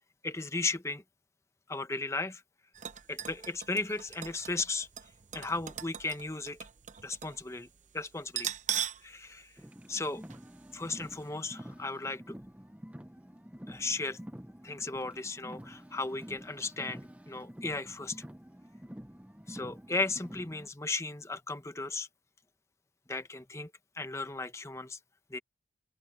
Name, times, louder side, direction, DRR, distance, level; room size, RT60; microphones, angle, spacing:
voice 1, 0.2-1.0 1.7-2.4 3.1-4.9 5.3-6.6 7.0-7.7 7.9-8.5 9.0-9.5 9.9-10.2 10.7-12.3 13.7-14.2 14.6-18.2 19.5-22.1 23.1-23.7 24.0-25.0 25.3-25.4, left 3 dB, 15° left, 0.9 m, -35 dB
sound 1, 2.7-7.4 7.7-7.8 8.3-9.1 9.4-9.5 10.3-10.5 10.8-10.9, right 9 dB, 40° right, 0.9 m, -39 dB
Car, 9.6-20.7, equal, 10° right, 0.8 m, -48 dB
open air
head